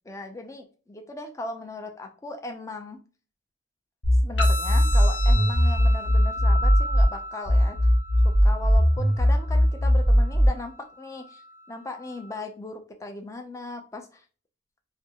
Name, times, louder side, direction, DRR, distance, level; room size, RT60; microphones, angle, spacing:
voice 1, 0.1-3.0 4.2-7.8 8.2-11.4 11.7-14.2, left 2 dB, 15° left, 4 dB, 0.4 m, -38 dB
sound 1, 4.0-7.1 7.5-10.5, equal, 55° left, 1.0 m, -19 dB
sound 2, 4.4-12.4, left 2 dB, 70° left, 0.6 m, -36 dB
2.6 x 2.5 x 2.8 m, 0.38 s
head